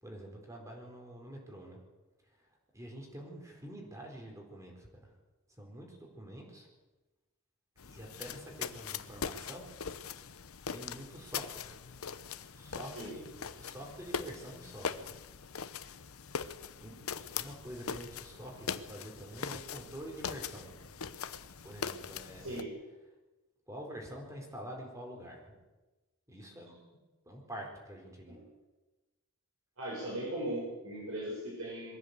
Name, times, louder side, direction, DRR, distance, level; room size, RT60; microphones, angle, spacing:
voice 1, 0.0-1.8 2.3-5.1 5.6-6.7 7.8-9.7 10.1-10.4 10.7-11.7 12.5-13.3 13.6-15.1 15.8-16.1 16.8-17.0 17.3-20.9 21.6-22.6 23.7-25.6 26.3-26.8 27.2-28.4, equal, 15° right, 1 dB, 4.4 m, -47 dB
sound 1, 7.8-22.6, left 6 dB, 80° left, 0.9 m, -41 dB
voice 2, 22.4-22.8 28.3-28.5 29.8-32.0, right 1 dB, 70° right, -3 dB, 6.5 m, -38 dB
22.5 x 15.5 x 8.3 m, 1.2 s
head